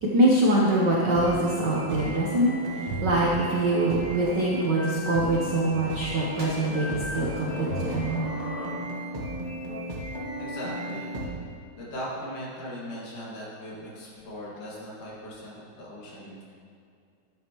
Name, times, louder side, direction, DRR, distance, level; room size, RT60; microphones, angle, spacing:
voice 1, 0.0-8.3, right 1 dB, 80° right, -4 dB, 0.9 m, -24 dB
sound 1, 1.1-11.3, equal, 30° right, 0.8 m, -35 dB
sound 2, 5.8-9.2, left 1 dB, 55° left, 2.0 m, -42 dB
voice 2, 10.4-11.1 11.7-16.5, equal, 90° left, -5 dB, 3.6 m, -39 dB
12.5 x 8.5 x 3.0 m, 2.4 s
omnidirectional pair, 3.4 m